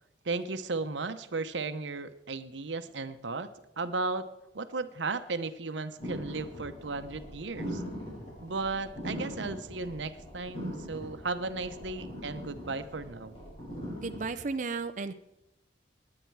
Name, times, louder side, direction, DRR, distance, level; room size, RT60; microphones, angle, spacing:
voice 1, 0.2-3.5 3.8-4.3 4.5-7.8 8.4-13.3, right 3 dB, 90° right, 11 dB, 0.9 m, -35 dB
sound 1, 6.0-14.2, equal, 35° left, 6.7 m, -41 dB
voice 2, 14.0-15.1, right 4 dB, 45° right, 9 dB, 0.5 m, -34 dB
19.5 x 9.8 x 4.7 m, 0.91 s
head